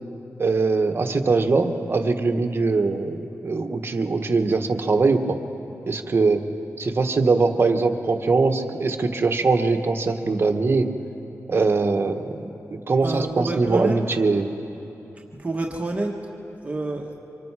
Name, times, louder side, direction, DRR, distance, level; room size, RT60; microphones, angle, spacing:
voice 1, 0.4-5.4 5.9-6.4 6.8-10.9 11.5-14.5, right 3 dB, 45° right, 5 dB, 1.2 m, -22 dB
voice 2, 13.0-14.0 15.4-16.1 16.6-17.1, right 2 dB, 25° right, -1 dB, 1.4 m, -27 dB
25.5 x 23.5 x 4.8 m, 3.0 s
wide cardioid pair, 110°, 6 cm